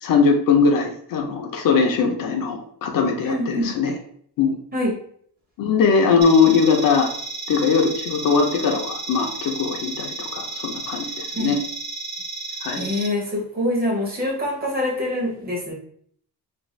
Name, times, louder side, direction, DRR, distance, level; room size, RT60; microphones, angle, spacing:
voice 1, 0.0-3.9 4.4-4.6 5.6-7.1 7.5-11.6 12.6-12.9, left 5 dB, 55° left, 3 dB, 0.5 m, -20 dB
voice 2, 3.2-3.7 4.7-4.9 11.3-11.6 12.7-15.7, left 1 dB, 20° right, -2 dB, 0.8 m, -25 dB
sound 1, 6.2-13.1, right 3 dB, 60° right, 0.6 m, -33 dB
2.5 x 2.3 x 3.1 m, 0.62 s
cardioid pair, 140°, 41 cm